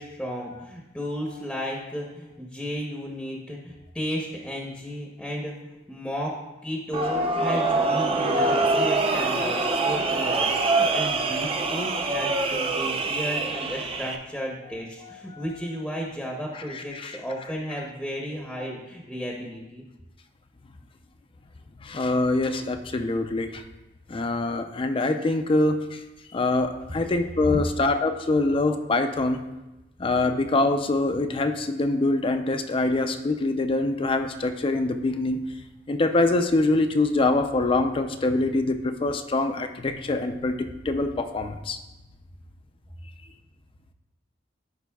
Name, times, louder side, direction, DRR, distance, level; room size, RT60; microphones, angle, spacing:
voice 1, 0.0-5.6 5.9-6.4 6.6-19.8, equal, ahead, -2 dB, 0.7 m, -33 dB
sound 1, 6.9-14.2, right 3 dB, 30° right, 0.6 m, -24 dB
voice 2, 15.0-15.4 16.5-17.1 21.8-23.6 24.1-26.0 26.3-29.4 30.0-35.4 35.9-41.8, left 2 dB, 30° left, 7 dB, 0.4 m, -24 dB
13.0 x 5.1 x 2.3 m, 1.0 s
head